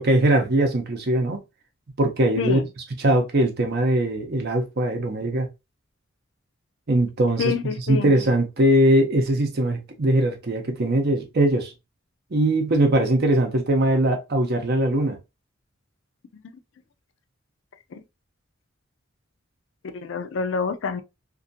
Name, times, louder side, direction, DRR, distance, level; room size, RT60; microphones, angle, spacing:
voice 1, 0.0-1.4 2.0-2.6 3.0-5.5 6.9-7.5 7.9-11.7 12.3-15.2, right 1 dB, 50° right, 0.7 m, -21 dB
voice 2, 2.4-2.7 7.4-8.1 16.3-16.4 17.9-18.0 19.8-21.0, left 5 dB, 65° left, 0.4 m, -27 dB
2.6 x 2.4 x 2.6 m
head